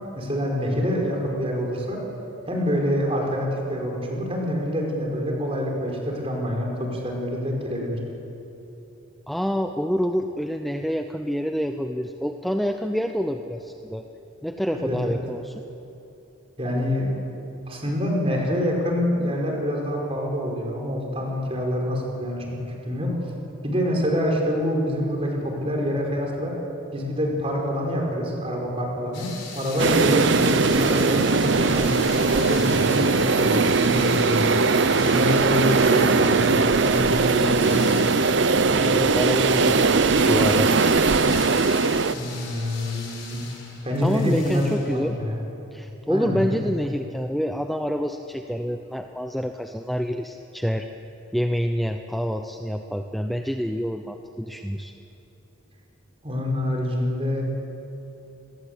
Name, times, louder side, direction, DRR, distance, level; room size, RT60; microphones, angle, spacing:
voice 1, 0.1-2.0 2.5-8.0 14.7-15.2 16.6-17.1 17.7-22.4 22.9-23.2 23.6-26.5 26.9-29.3 29.5-34.5 35.0-38.0 42.1-43.4 43.8-45.4 46.1-46.6 56.2-57.4, equal, 30° right, 0 dB, 5.4 m, -26 dB
voice 2, 9.3-14.0 14.4-15.5 38.7-40.7 44.0-45.2 45.7-50.9 51.3-54.9, equal, ahead, 5 dB, 0.7 m, -27 dB
sound 1, 29.1-45.2, left 5 dB, 60° left, 5.6 m, -40 dB
sound 2, 29.8-42.1, right 4 dB, 60° right, 0.7 m, -20 dB
27.0 x 21.0 x 8.4 m, 2.9 s
head